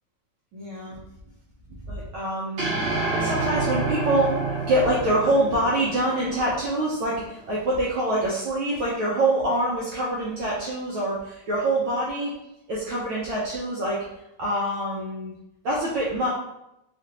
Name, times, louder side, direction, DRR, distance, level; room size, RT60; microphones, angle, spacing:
voice 1, 0.5-1.0 1.9-2.7 3.1-12.3 12.7-14.0 14.4-15.3 15.6-16.3, right 1 dB, 80° right, -7 dB, 1.1 m, -25 dB
sound 1, 2.6-7.0, right 3 dB, 60° right, 2.3 m, -28 dB
5.4 x 2.4 x 2.8 m, 0.85 s
omnidirectional pair, 3.3 m